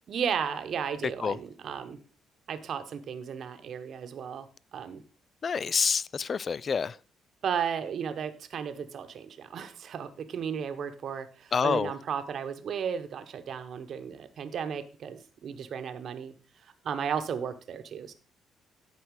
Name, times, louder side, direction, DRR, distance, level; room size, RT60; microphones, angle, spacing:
voice 1, 0.1-2.0 2.5-5.0 7.4-16.3 16.8-18.1, right 7 dB, 60° right, 1.0 m, -34 dB
voice 2, 5.4-7.0 11.5-11.9, left 6 dB, 45° left, 0.3 m, -27 dB
12.0 x 4.6 x 4.8 m
cardioid pair, 90°, 0 cm